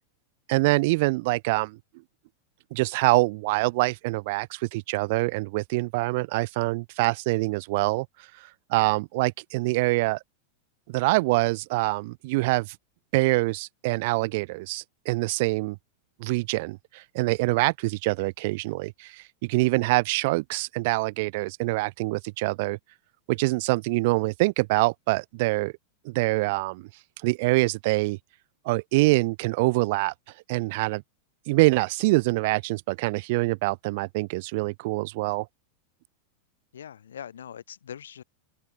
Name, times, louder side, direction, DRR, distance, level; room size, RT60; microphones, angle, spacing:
voice 1, 0.5-1.8 2.7-8.1 8.4-10.2 10.9-12.8 13.1-15.8 16.2-22.8 23.3-25.7 26.0-26.9 27.2-28.2 28.7-30.1 30.5-31.0 31.5-35.5, right 23 dB, 50° right, 0.4 m, -25 dB
voice 2, 36.7-38.2, left 9 dB, 65° left, 7.1 m, -42 dB
figure-of-eight pair, 90°, 0 cm